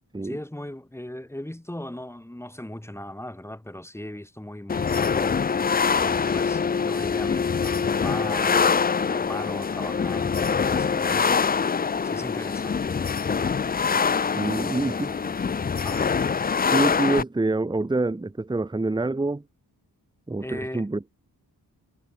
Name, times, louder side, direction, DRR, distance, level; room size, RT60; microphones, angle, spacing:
voice 1, 0.2-5.5 6.0-11.5 12.0-13.0 14.6-15.4 15.8-16.1 20.4-20.9, left 1 dB, 5° left, 2.0 m, -38 dB
sound 1, 4.7-17.2, left 6 dB, 25° left, 0.3 m, -24 dB
voice 2, 14.3-15.1 16.7-19.4 20.3-21.0, right 2 dB, 10° right, 0.8 m, -26 dB
wide cardioid pair, 130°, 38 cm